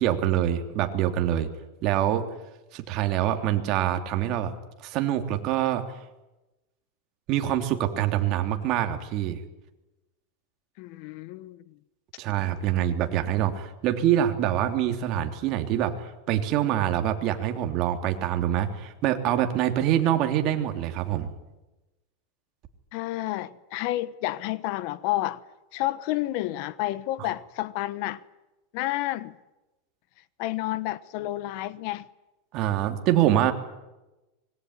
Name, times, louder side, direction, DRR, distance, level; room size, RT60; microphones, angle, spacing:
voice 1, 0.0-1.5 1.8-2.2 2.7-4.5 4.8-6.0 7.3-9.4 12.2-21.3 32.5-33.5, right 11 dB, 40° right, 3.2 m, -25 dB
voice 2, 10.8-11.6 22.9-25.4 25.7-28.2 28.7-29.4 30.4-32.0, left 16 dB, 50° left, 1.1 m, -30 dB
25.0 x 21.0 x 9.8 m
supercardioid pair, 150°, 0 cm